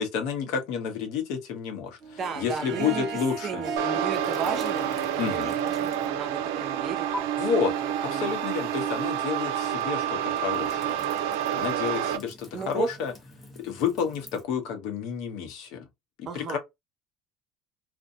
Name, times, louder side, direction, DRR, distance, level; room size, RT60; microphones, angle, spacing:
voice 1, 0.0-3.6 5.2-5.5 7.4-7.7 8.0-11.0 11.5-13.1 13.6-15.9 16.2-16.6, left 6 dB, 75° left, 0.8 m, -30 dB
Harp, 2.0-7.2, right 5 dB, 65° right, 0.9 m, -36 dB
voice 2, 2.2-7.1 7.8-8.4 11.8-12.0 12.5-12.9 16.3-16.6, right 6 dB, 40° right, 0.6 m, -35 dB
sound 1, 3.8-12.2, right 10 dB, 90° right, 0.4 m, -29 dB
sound 2, 4.1-6.3 6.6-7.2 9.3-14.4, left 1 dB, 15° left, 0.7 m, -46 dB
2.5 x 2.1 x 2.6 m
cardioid pair, 120°, 0 cm